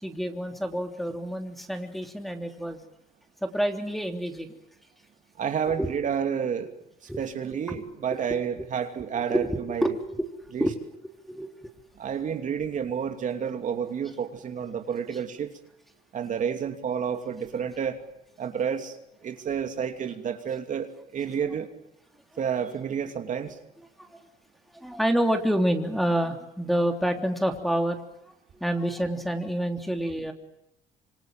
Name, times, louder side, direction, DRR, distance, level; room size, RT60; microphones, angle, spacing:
voice 1, 0.0-2.8 3.4-4.5 5.8-6.0 7.1-7.2 7.7-7.8 9.3-10.3 10.6-10.7 11.3-11.7 24.0-24.2 24.7-28.0 28.5-30.3, right 1 dB, ahead, 5 dB, 3.3 m, -28 dB
voice 2, 5.4-6.7 7.2-9.9 10.5-10.7 12.0-15.5 16.1-18.0 18.4-19.0 19.2-21.7 22.4-23.6, right 7 dB, 50° right, 6 dB, 2.8 m, -30 dB
26.5 x 25.0 x 7.6 m, 0.86 s
cardioid pair, 110°, 17 cm